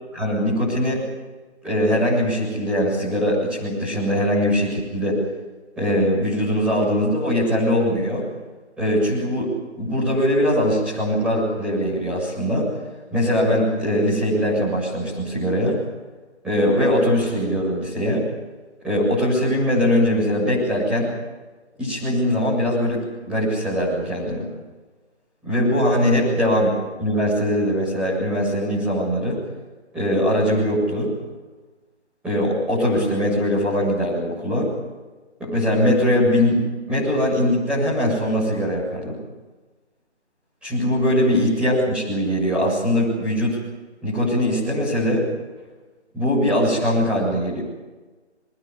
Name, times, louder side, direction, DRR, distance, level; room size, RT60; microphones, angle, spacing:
voice 1, 0.1-1.0 1.6-5.2 5.8-8.2 8.8-9.5 9.8-12.7 13.1-15.8 16.4-18.2 18.8-21.1 21.8-24.4 25.4-26.7 27.0-29.4 29.9-31.1 32.2-34.7 35.4-36.6 36.9-39.2 40.6-43.6 44.0-45.2 46.1-47.6, equal, 5° right, -9 dB, 7.6 m, -21 dB
24.0 x 21.5 x 8.3 m, 1.2 s
figure-of-eight pair, 165°, 34 cm